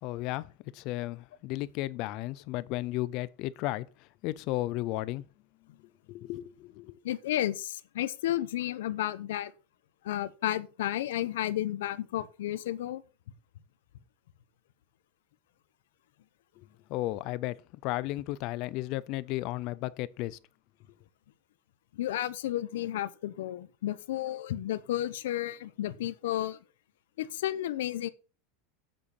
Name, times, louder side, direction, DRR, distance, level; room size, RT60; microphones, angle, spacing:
voice 1, 0.0-5.2 6.1-7.0 16.9-17.6 17.8-20.4, left 17 dB, 40° left, 0.5 m, -34 dB
voice 2, 7.0-9.5 10.0-13.0 21.9-26.6 27.2-28.1, left 13 dB, 80° left, 0.9 m, -32 dB
7.7 x 6.7 x 7.2 m
supercardioid pair, 175°, 0 cm